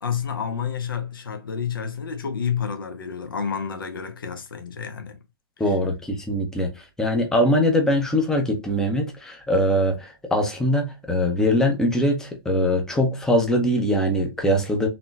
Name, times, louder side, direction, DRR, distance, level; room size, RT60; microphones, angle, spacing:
voice 1, 0.0-5.2, left 7 dB, 65° left, 0.9 m, -29 dB
voice 2, 5.6-14.9, left 1 dB, 5° left, 0.7 m, -22 dB
3.9 x 2.9 x 2.3 m
figure-of-eight pair, 125°, 13 cm